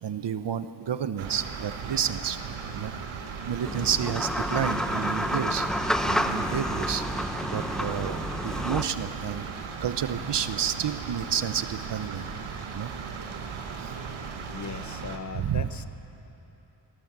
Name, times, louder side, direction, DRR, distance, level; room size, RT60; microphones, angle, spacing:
voice 1, 0.0-2.4 2.7-2.9 3.5-5.7 6.1-7.0 7.5-9.4 9.8-12.2 12.7-12.9 15.3-15.6, right 8 dB, 60° right, 11 dB, 1.0 m, -30 dB
sound 1, 1.2-15.2, right 5 dB, 85° right, 1.8 m, -37 dB
sound 2, 3.6-8.8, equal, ahead, 1.0 m, -29 dB
voice 2, 14.2-15.9, left 5 dB, 40° left, 12 dB, 0.8 m, -40 dB
21.0 x 19.0 x 7.5 m, 3.0 s
cardioid pair, 85°, 47 cm